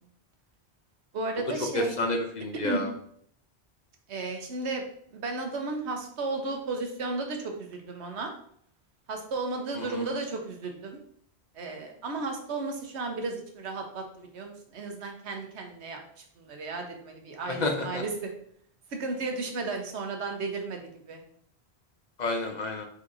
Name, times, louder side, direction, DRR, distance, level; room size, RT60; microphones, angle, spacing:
voice 1, 1.1-1.9 2.6-2.9 4.1-4.8 5.1-8.3 9.1-11.0 11.5-18.3 18.9-21.2, right 3 dB, 85° right, 3 dB, 1.2 m, -34 dB
voice 2, 1.7-2.9 9.9-10.0 17.5-18.0 22.2-22.8, left 2 dB, 50° left, 3 dB, 0.6 m, -29 dB
5.0 x 4.1 x 2.6 m, 0.65 s
omnidirectional pair, 1.1 m